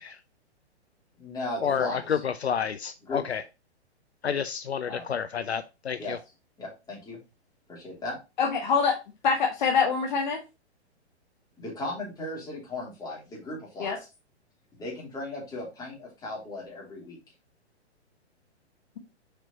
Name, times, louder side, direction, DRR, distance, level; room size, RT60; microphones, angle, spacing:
voice 1, 1.2-2.2 3.0-3.2 4.8-5.1 6.0-6.2 6.6-7.2 7.7-8.2 11.6-14.0 14.8-17.2, left 2 dB, 10° left, -4 dB, 3.1 m, -36 dB
voice 2, 2.4-3.4 4.2-6.0, left 7 dB, 70° left, 11 dB, 0.6 m, -29 dB
voice 3, 8.4-8.9 9.2-10.4 13.8-14.0, left 5 dB, 40° left, 2 dB, 1.1 m, -24 dB
6.7 x 5.0 x 2.8 m, 0.26 s
figure-of-eight pair, 115°, 34 cm